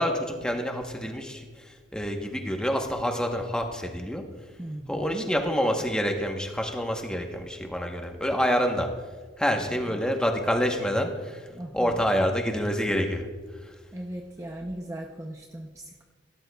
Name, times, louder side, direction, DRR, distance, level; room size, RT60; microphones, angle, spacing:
voice 1, 0.0-1.5 1.9-4.2 4.9-8.9 9.4-11.4 11.7-13.2, equal, 5° left, 3 dB, 0.9 m, -27 dB
voice 2, 4.6-5.3 9.5-10.0 11.5-12.1 13.9-16.0, right 1 dB, 15° right, 2 dB, 0.5 m, -38 dB
16.5 x 12.0 x 2.3 m, 1.5 s
head